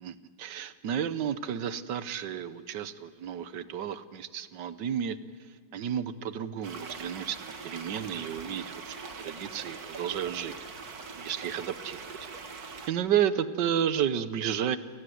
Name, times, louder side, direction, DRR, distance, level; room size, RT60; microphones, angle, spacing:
voice 1, 0.0-5.2 5.7-10.5 11.2-12.3 12.6-14.8, right 9 dB, 75° right, 14 dB, 1.6 m, -32 dB
sound 1, 6.6-12.9, right 4 dB, 60° right, 2.1 m, -42 dB
29.5 x 18.5 x 7.8 m, 2.1 s
omnidirectional pair, 1.9 m